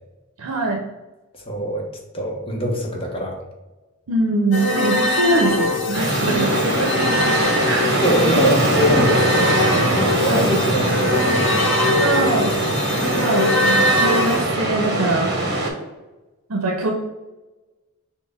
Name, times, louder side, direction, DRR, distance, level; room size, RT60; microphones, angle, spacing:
voice 1, 0.4-0.8 4.1-8.5 10.3-10.6 12.0-12.6 13.0-15.3 16.5-16.9, right 2 dB, 80° right, 1 dB, 0.6 m, -23 dB
voice 2, 1.5-1.9 2.1-3.4 8.0-11.6, left 1 dB, 25° left, 0 dB, 0.8 m, -24 dB
sound 1, 4.5-14.4, left 1 dB, 75° left, 0.8 m, -22 dB
sound 2, 5.9-15.7, right 1 dB, 50° right, 1.0 m, -22 dB
6.1 x 2.1 x 3.5 m, 1.1 s
head